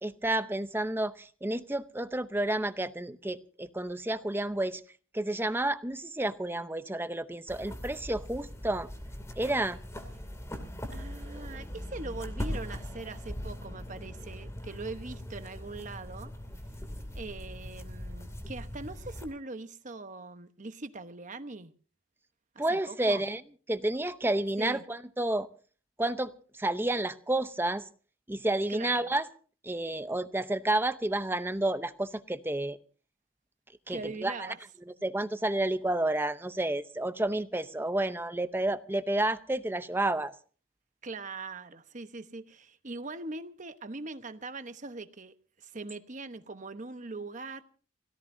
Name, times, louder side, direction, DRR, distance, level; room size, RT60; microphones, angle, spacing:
voice 1, 0.0-4.8 5.1-8.9 9.4-9.8 22.6-23.4 23.7-25.5 26.0-26.3 26.6-27.8 28.3-29.3 29.6-32.8 33.9-34.5 34.9-40.3, right 1 dB, 10° right, 0.7 m, -30 dB
sound 1, 7.5-19.2, equal, 15° left, 2.6 m, -40 dB
voice 2, 10.9-16.3 17.1-21.7 22.5-23.3 24.6-24.8 28.7-29.1 33.9-34.6 41.0-47.6, right 3 dB, 40° right, 1.0 m, -41 dB
29.5 x 17.5 x 2.7 m
head